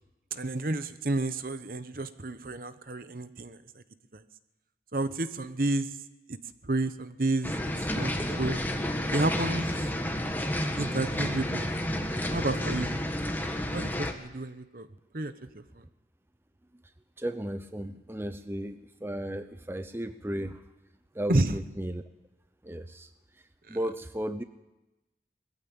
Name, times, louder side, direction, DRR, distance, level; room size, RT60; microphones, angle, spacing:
voice 1, 0.3-3.6 4.1-4.2 4.9-5.9 6.3-6.4 6.6-7.5 7.8-8.6 9.1-9.7 10.8-11.7 12.3-12.9 13.7-14.9 15.1-15.6 21.3-21.5 23.7-23.8, right 2 dB, 50° right, 11 dB, 1.0 m, -30 dB
sound 1, 7.4-14.1, left 1 dB, 10° left, 1.5 m, -31 dB
voice 2, 17.2-20.6 21.1-22.0 22.6-23.1 23.7-24.4, right 1 dB, 15° right, 9 dB, 0.7 m, -34 dB
20.5 x 15.0 x 8.8 m, 1.0 s
head